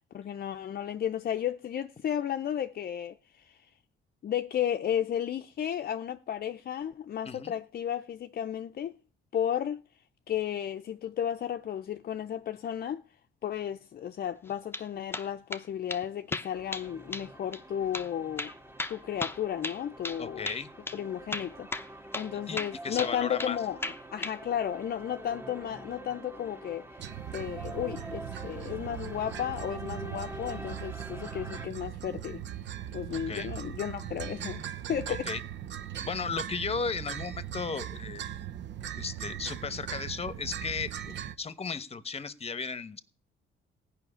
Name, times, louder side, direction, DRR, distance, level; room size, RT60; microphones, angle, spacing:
voice 1, 0.1-3.7 4.2-8.9 9.3-9.8 10.3-13.0 13.4-18.5 18.9-20.5 20.9-21.7 22.1-26.9 27.3-32.4 32.9-35.3, left 10 dB, 50° left, 0.6 m, -33 dB
sound 1, 14.5-14.9 15.1-15.6 15.9-16.0 16.3-16.9 17.1-17.3 17.5-17.6 17.9-18.1 18.4-20.2 20.5-20.6 20.9-21.0 21.3-21.9 22.1-22.3 22.6-23.6 23.8-24.4, left 2 dB, 10° left, 0.8 m, -35 dB
sound 2, 16.5-31.7, right 1 dB, 10° right, 1.7 m, -46 dB
voice 2, 20.2-20.7 22.5-22.6 22.8-23.6 33.3-33.5 35.1-35.4 36.0-38.2 39.0-43.0, left 5 dB, 30° left, 1.0 m, -35 dB
sound 3, 27.0-41.3, right 10 dB, 65° right, 0.8 m, -39 dB
15.5 x 5.8 x 9.9 m
cardioid pair, 90°, 20 cm